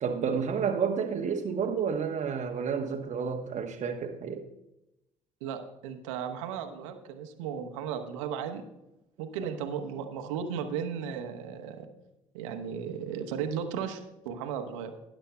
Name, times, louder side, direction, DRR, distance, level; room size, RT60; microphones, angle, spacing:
voice 1, 0.0-4.5, right 6 dB, 45° right, 2 dB, 1.1 m, -30 dB
voice 2, 5.4-8.6 9.2-11.9 12.3-14.9, right 7 dB, 70° right, 6 dB, 1.1 m, -35 dB
19.0 x 10.5 x 2.2 m, 0.91 s
figure-of-eight pair, 50°, 17 cm